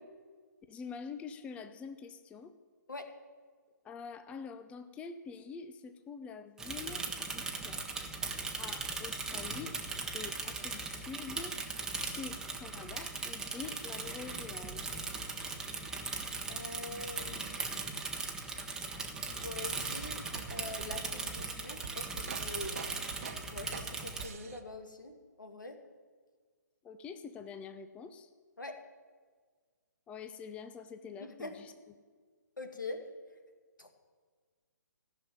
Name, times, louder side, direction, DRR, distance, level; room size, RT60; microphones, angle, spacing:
voice 1, 0.7-2.5 3.8-7.8 8.6-11.6 11.9-14.9 26.8-28.3 30.1-31.7, left 5 dB, 10° left, 10 dB, 0.5 m, -46 dB
Bicycle / Mechanisms, 6.6-24.3, right 3 dB, 5° right, 1.2 m, -39 dB
voice 2, 16.5-17.6 19.3-20.2 20.5-22.8 23.5-25.8 28.6-28.8 31.2-31.6 32.6-33.0 33.8-33.9, left 2 dB, 80° left, 5 dB, 2.3 m, -44 dB
sound 1, 19.6-24.6, right 6 dB, 50° right, 1.1 m, -46 dB
15.0 x 7.1 x 9.2 m, 1.5 s
figure-of-eight pair, 130°, 10 cm